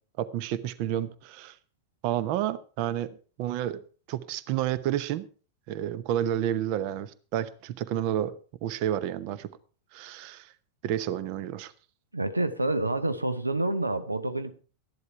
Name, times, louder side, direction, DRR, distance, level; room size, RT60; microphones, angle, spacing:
voice 1, 0.2-1.6 2.0-3.8 4.1-5.3 5.7-8.3 8.6-9.5 9.9-10.5 10.8-11.7, right 11 dB, 45° right, 16 dB, 0.9 m, -30 dB
voice 2, 12.1-14.6, right 2 dB, 85° right, 12 dB, 0.7 m, -28 dB
14.0 x 11.0 x 4.7 m, 0.37 s
figure-of-eight pair, 90°, 0 cm